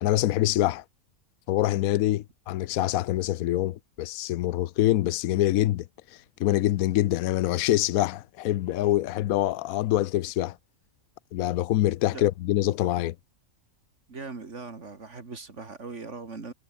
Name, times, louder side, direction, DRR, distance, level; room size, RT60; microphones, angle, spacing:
voice 1, 0.0-0.8 1.5-5.8 6.1-10.6 11.3-13.1, left 14 dB, 80° left, 1.0 m, -25 dB
voice 2, 14.1-16.5, right 4 dB, 55° right, 2.8 m, -40 dB
omnidirectional pair, 1.5 m